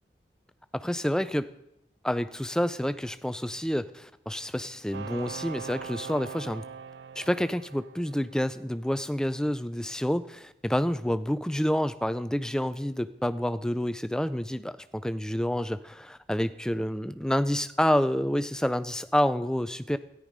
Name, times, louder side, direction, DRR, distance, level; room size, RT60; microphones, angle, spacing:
voice 1, 0.7-1.5 2.0-6.6 7.2-20.0, equal, 5° left, 13 dB, 0.4 m, -28 dB
sound 1, 4.9-8.6, right 6 dB, 75° right, 0.4 m, -41 dB
13.5 x 11.0 x 5.1 m, 0.84 s
head